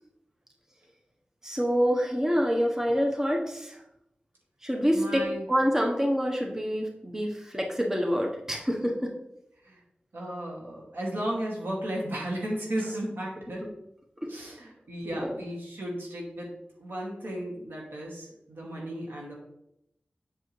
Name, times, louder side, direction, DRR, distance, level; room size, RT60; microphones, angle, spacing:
voice 1, 1.4-3.8 4.6-9.1 14.2-14.5 15.0-15.4, equal, 15° right, 0 dB, 1.1 m, -27 dB
voice 2, 4.9-5.5 9.6-9.8 10.1-13.6 14.3-16.5 16.8-19.3, right 1 dB, 90° right, -2 dB, 2.4 m, -34 dB
7.5 x 6.5 x 3.3 m, 0.82 s
wide cardioid pair, 85°, 3 cm